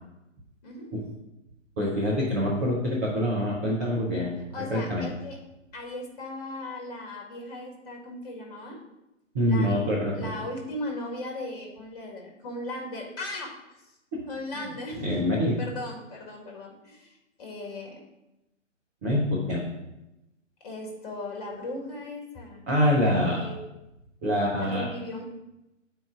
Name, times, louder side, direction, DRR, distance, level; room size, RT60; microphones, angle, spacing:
voice 1, 1.8-4.4 4.7-5.1 9.3-10.3 14.1-14.2 14.5-14.7 15.0-15.5 19.0-19.6 22.7-23.4 24.2-24.9, equal, 15° right, -7 dB, 0.6 m, -25 dB
voice 2, 4.5-5.4 5.7-8.8 9.5-13.5 14.3-15.2 15.6-17.9 20.6-22.6 23.0-23.6 24.6-25.2, left 2 dB, 30° left, 0 dB, 1.8 m, -37 dB
8.6 x 4.6 x 3.7 m, 0.93 s
figure-of-eight pair, 135°, 38 cm